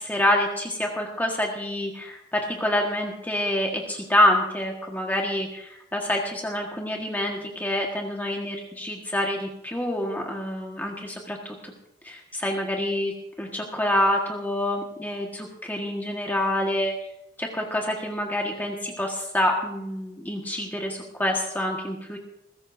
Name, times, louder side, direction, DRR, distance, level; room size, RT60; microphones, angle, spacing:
voice 1, 0.0-11.7 12.0-13.1 13.4-16.9 17.4-22.2, left 1 dB, 10° left, 0 dB, 1.5 m, -27 dB
20.0 x 16.5 x 2.7 m, 0.87 s
head